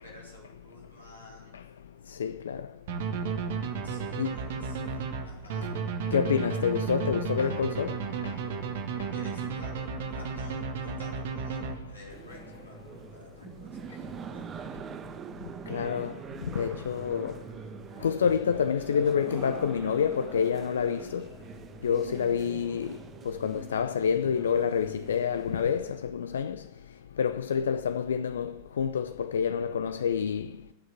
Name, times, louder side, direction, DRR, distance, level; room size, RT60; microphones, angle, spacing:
voice 1, 0.0-1.6 3.8-4.8 5.2-5.7 9.1-13.7 14.0-14.7, left 1 dB, 80° left, 5.3 m, -52 dB
voice 2, 2.2-2.7 4.2-4.3 6.1-7.9 8.2-8.3 15.7-16.2 16.5-17.3 18.0-21.2 21.8-23.0 23.3-26.6 27.2-30.5, left 7 dB, 65° left, 0.5 m, -28 dB
Level Up, 2.9-12.2, right 5 dB, 55° right, 1.6 m, -33 dB
sound 1, 12.1-26.0, right 7 dB, 25° right, 1.1 m, -44 dB
19.0 x 6.4 x 7.7 m
figure-of-eight pair, 90°, 0 cm